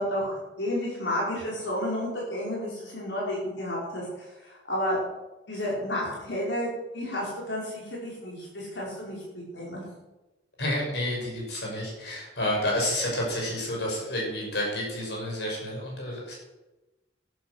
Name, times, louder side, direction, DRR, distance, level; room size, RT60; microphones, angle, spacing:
voice 1, 0.0-5.0 5.5-6.7 6.9-9.9, left 1 dB, 90° left, -5 dB, 5.4 m, -31 dB
voice 2, 10.6-16.4, left 1 dB, 70° left, -2 dB, 6.1 m, -30 dB
12.5 x 11.5 x 6.6 m, 1.0 s
head